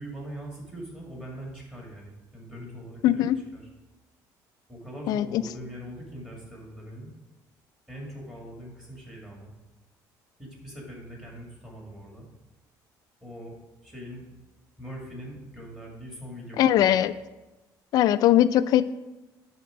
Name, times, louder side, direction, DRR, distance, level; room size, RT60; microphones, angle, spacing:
voice 1, 0.0-3.3 3.5-3.6 4.7-7.1 7.9-9.5 10.4-12.3 13.2-14.3 14.8-17.0, equal, 10° right, -2 dB, 2.0 m, -42 dB
voice 2, 3.0-3.4 5.1-5.4 16.6-17.1 17.9-18.9, left 12 dB, 55° left, 14 dB, 0.3 m, -20 dB
10.5 x 3.6 x 4.9 m, 1.1 s
cardioid pair, 145°, 8 cm